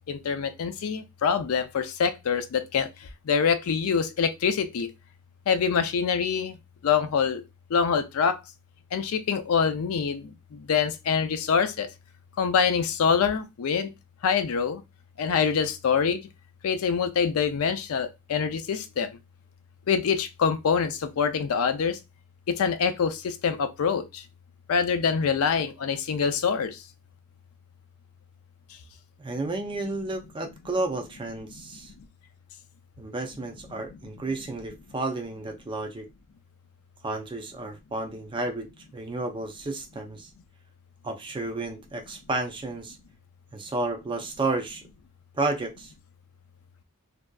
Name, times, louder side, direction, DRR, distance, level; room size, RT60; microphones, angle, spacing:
voice 1, 0.1-2.9 3.3-4.9 5.5-6.6 6.8-7.4 7.7-8.4 8.9-11.9 12.4-13.9 14.2-14.8 15.2-16.2 16.6-19.1 19.9-22.0 22.5-24.2 24.7-26.8, left 6 dB, 70° left, 0.4 m, -25 dB
voice 2, 29.2-31.9 33.0-36.1 37.0-40.3 41.0-43.0 43.5-44.8 45.3-45.9, right 2 dB, 20° right, 0.4 m, -32 dB
2.6 x 2.2 x 2.2 m
head